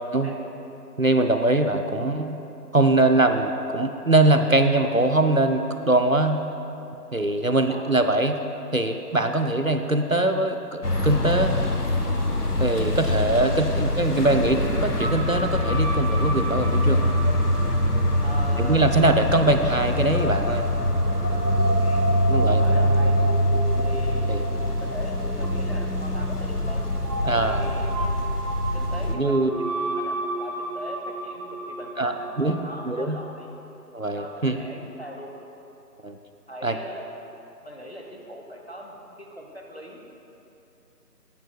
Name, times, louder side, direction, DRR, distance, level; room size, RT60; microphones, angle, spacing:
voice 1, 1.0-2.4 2.7-6.4 7.1-8.4 8.7-11.6 12.6-17.2 18.6-20.7 22.3-22.6 23.7-23.8 24.3-24.4 27.3-27.7 29.1-29.5 32.0-32.6 32.9-33.2 33.9-34.6 36.0-36.2 36.6-36.8, right 2 dB, 55° right, 6 dB, 0.5 m, -22 dB
voice 2, 7.5-7.9 13.8-14.0 18.2-18.9 21.8-23.2 23.8-26.8 27.2-27.9 28.7-29.5 29.9-33.5 34.1-35.3 36.5-37.0 37.6-40.0, equal, 40° left, 0 dB, 1.0 m, -40 dB
sound 1, 10.8-29.1, left 1 dB, 65° left, 1.2 m, -24 dB
sound 2, 15.0-33.1, right 1 dB, 80° right, 1.2 m, -33 dB
17.0 x 9.5 x 2.3 m, 2.8 s
figure-of-eight pair, 170°, 50 cm